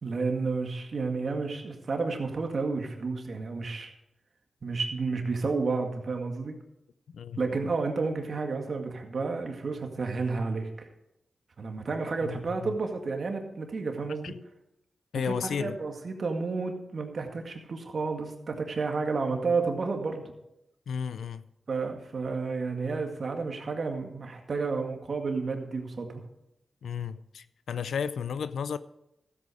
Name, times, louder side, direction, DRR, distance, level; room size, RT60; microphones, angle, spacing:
voice 1, 0.0-3.9 4.6-6.6 7.4-10.9 11.6-14.3 15.1-20.3 21.7-26.2, right 4 dB, 65° right, 1.9 m, -31 dB
voice 2, 12.2-12.7 14.2-14.4 15.1-15.8 20.9-21.4 26.8-28.8, left 7 dB, 85° left, 0.5 m, -33 dB
13.5 x 8.4 x 5.0 m
cardioid pair, 45°, 0 cm